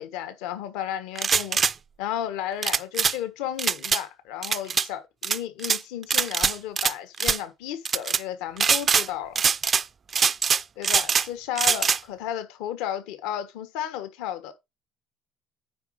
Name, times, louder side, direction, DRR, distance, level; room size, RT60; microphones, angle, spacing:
voice 1, 0.0-1.6 2.0-9.4 10.8-14.5, left 10 dB, 85° left, 1.2 m, -33 dB
sound 1, 1.2-1.7 2.6-3.2 3.6-4.0 4.4-4.9 5.2-5.8 6.1-6.9 7.2-7.4 7.9-8.2 8.6-9.1 9.4-9.8 10.1-11.3 11.6-12.0, right 6 dB, 30° right, 0.3 m, -23 dB
9.4 x 3.9 x 5.0 m
cardioid pair, 130°, 0 cm